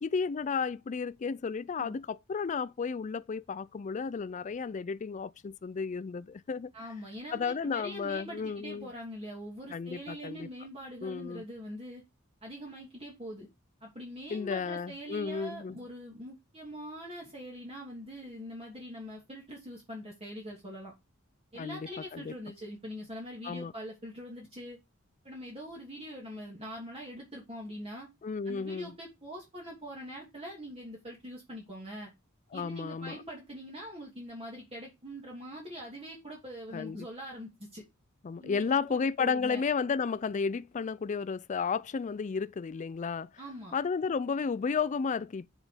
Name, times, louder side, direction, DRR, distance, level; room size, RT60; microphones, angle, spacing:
voice 1, 0.0-6.7 7.3-8.9 9.7-10.5 11.0-11.4 14.3-15.8 21.6-22.3 23.4-23.7 28.2-28.9 32.5-33.2 36.7-37.1 38.2-43.3 43.7-45.5, left 5 dB, 35° left, 0.4 m, -33 dB
voice 2, 6.7-12.0 12.4-13.5 13.8-20.9 21.5-24.8 25.2-28.1 28.4-32.1 32.5-37.8 38.4-39.6 43.4-43.8, equal, 30° right, 2.8 m, -43 dB
7.5 x 5.0 x 5.0 m
head